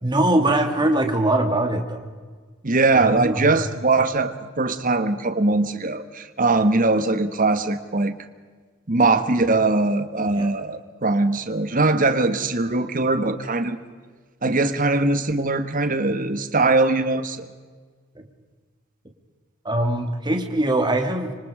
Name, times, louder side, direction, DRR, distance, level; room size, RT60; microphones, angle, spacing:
voice 1, 0.0-2.0 2.9-3.5 10.3-10.5 19.6-21.3, right 1 dB, 20° right, 4 dB, 2.4 m, -22 dB
voice 2, 2.6-8.1 8.9-13.8 14.4-17.5, right 3 dB, 40° right, 10 dB, 1.4 m, -21 dB
26.0 x 25.5 x 5.0 m, 1.5 s
head